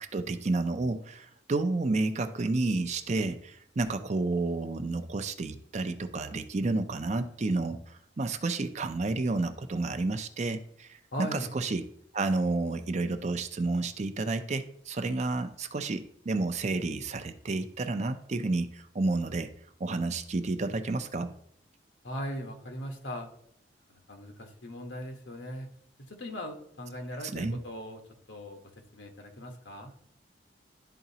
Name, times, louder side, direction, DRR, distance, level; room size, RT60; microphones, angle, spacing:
voice 1, 0.1-7.8 8.2-10.9 11.2-11.8 12.1-19.5 19.8-21.3 27.3-27.6, right 3 dB, 40° right, 9 dB, 0.5 m, -30 dB
voice 2, 11.1-11.5 22.0-23.3 23.9-25.7 26.0-28.0 28.3-28.6 28.9-29.9, equal, 90° left, 3 dB, 1.2 m, -39 dB
11.5 x 3.9 x 2.8 m, 0.68 s
head